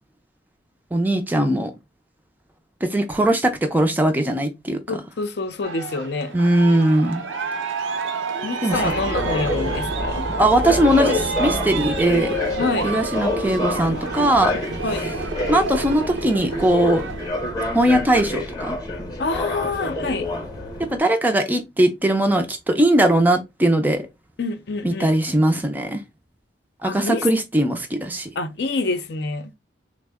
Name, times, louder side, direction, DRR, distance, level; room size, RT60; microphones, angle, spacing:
voice 1, 0.9-1.7 2.8-5.0 6.3-7.2 8.6-8.9 10.4-12.4 12.8-14.6 15.5-17.0 17.7-18.8 20.9-24.1 24.8-26.0 26.8-28.3, right 1 dB, 10° right, 0.4 m, -20 dB
voice 2, 4.9-6.3 8.4-10.3 12.6-12.9 14.8-15.1 19.2-20.3 24.4-25.1 26.8-27.3 28.4-29.5, left 3 dB, 60° left, 0.5 m, -26 dB
Aircraft, 5.6-17.3, right 4 dB, 90° right, 0.6 m, -30 dB
sound 1, 8.7-21.0, left 2 dB, 20° left, 0.7 m, -27 dB
3.4 x 2.0 x 3.4 m
head